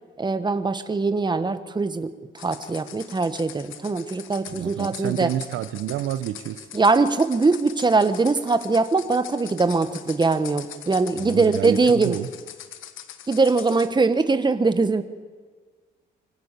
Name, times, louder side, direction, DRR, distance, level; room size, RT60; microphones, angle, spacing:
voice 1, 0.2-5.3 6.7-12.2 13.3-15.0, right 3 dB, 20° right, 10 dB, 1.6 m, -22 dB
sound 1, 2.4-13.9, left 11 dB, 80° left, 1.4 m, -42 dB
voice 2, 4.5-6.6 11.2-12.3, right 12 dB, 85° right, 12 dB, 1.0 m, -29 dB
25.0 x 16.0 x 7.0 m, 1.5 s
cardioid pair, 90°, 20 cm